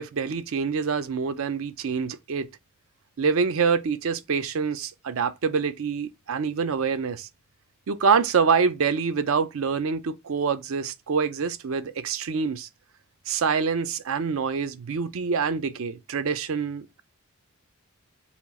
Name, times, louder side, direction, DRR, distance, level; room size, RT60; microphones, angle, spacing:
voice 1, 0.0-2.5 3.2-7.3 7.9-12.7 13.3-17.0, right 5 dB, 65° right, 0.5 m, -26 dB
4.2 x 2.4 x 4.0 m
head